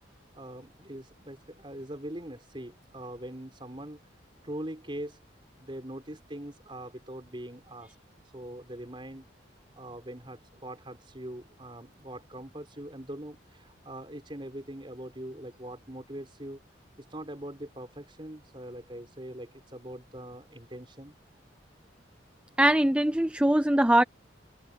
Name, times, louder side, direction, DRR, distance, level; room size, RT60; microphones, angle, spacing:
voice 1, 0.3-4.0 4.4-5.2 5.6-8.0 8.3-9.2 9.7-16.6 17.0-21.1, right 1 dB, 25° right, 4.4 m, -42 dB
voice 2, 22.6-24.0, right 1 dB, 5° right, 0.5 m, -22 dB
head